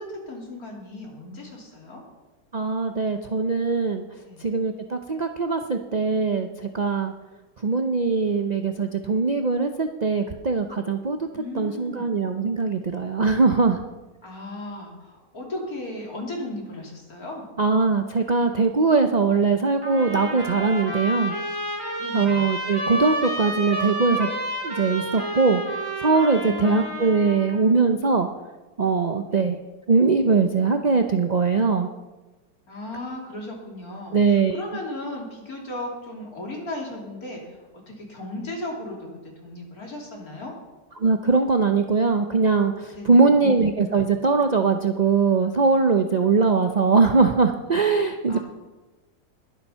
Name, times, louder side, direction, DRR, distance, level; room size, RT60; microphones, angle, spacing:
voice 1, 0.0-2.0 4.2-4.5 11.3-12.1 14.2-17.5 19.3-19.5 22.0-22.5 26.4-27.1 29.2-29.5 32.7-39.1 39.4-40.5 42.9-43.5 48.3-48.4, left 1 dB, 60° left, -1 dB, 3.4 m, -36 dB
voice 2, 2.5-4.0 4.4-6.5 6.7-7.1 7.6-11.3 11.6-13.8 17.6-21.3 22.1-24.3 24.6-25.6 26.0-28.3 28.8-29.6 29.9-31.9 34.1-34.6 41.0-48.4, right 4 dB, 65° right, 6 dB, 0.4 m, -21 dB
sound 1, 19.8-27.6, right 1 dB, 15° right, 2.6 m, -30 dB
21.5 x 7.1 x 5.6 m, 1.2 s
omnidirectional pair, 1.8 m